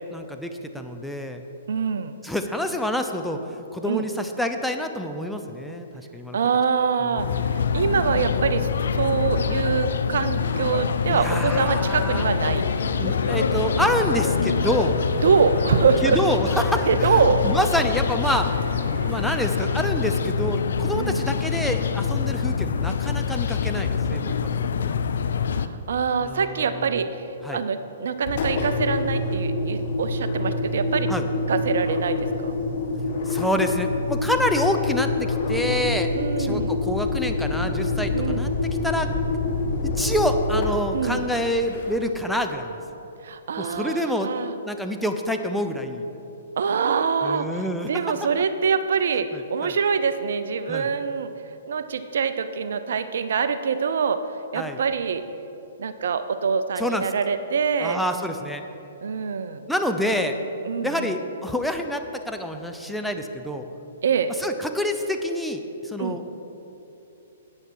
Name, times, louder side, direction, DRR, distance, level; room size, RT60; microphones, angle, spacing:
voice 1, 0.1-1.4 2.2-6.4 7.0-7.4 11.1-12.2 13.0-15.0 16.0-18.5 19.0-24.9 26.2-27.0 27.4-27.6 31.1-31.2 33.3-38.5 38.8-39.1 39.8-42.8 43.6-44.3 44.6-46.1 47.2-48.1 49.3-49.8 50.7-50.9 54.6-54.8 56.8-57.1 57.8-58.6 59.7-60.4 60.8-63.6 64.4-66.3, equal, ahead, 5 dB, 0.6 m, -27 dB
voice 2, 1.7-2.2 3.8-4.0 6.3-12.7 15.2-16.2 16.9-17.5 20.9-21.2 25.6-27.3 27.5-31.1 31.5-32.5 36.2-36.8 38.1-38.4 40.9-41.2 43.2-44.5 46.6-47.5 47.9-51.3 51.7-54.2 54.5-55.2 55.8-58.0 59.0-59.7 60.6-61.1 64.0-64.3 66.0-66.2, right 6 dB, 65° right, 11 dB, 0.6 m, -24 dB
sound 1, 7.2-25.7, left 6 dB, 70° left, 0.4 m, -25 dB
sound 2, 10.2-19.7, equal, 90° left, 2.2 m, -36 dB
Engine, 28.2-42.2, left 3 dB, 55° left, 1.4 m, -26 dB
11.0 x 8.5 x 4.7 m, 3.0 s
hypercardioid pair, 125°, 0 cm